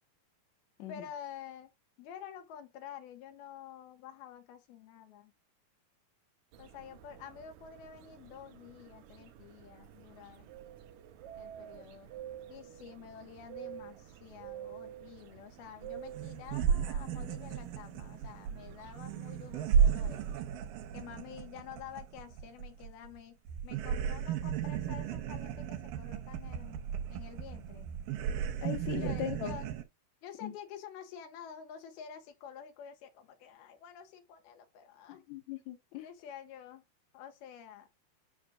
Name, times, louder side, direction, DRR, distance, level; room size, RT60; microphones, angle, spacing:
voice 1, 0.9-1.7 2.0-5.3 6.6-10.5 11.4-12.1 12.5-20.3 20.9-23.4 23.6-27.9 28.9-29.7 30.2-35.2 36.0-36.8 37.1-37.9, left 8 dB, 80° left, 3.3 m, -49 dB
sound 1, 6.5-20.4, right 11 dB, 90° right, 1.6 m, -50 dB
sound 2, 15.8-15.9 16.1-23.2 23.5-29.8, right 8 dB, 75° right, 2.4 m, -34 dB
voice 2, 28.6-29.6 30.4-30.5 35.1-36.1, left 11 dB, 60° left, 2.2 m, -39 dB
9.8 x 6.3 x 2.5 m
omnidirectional pair, 4.4 m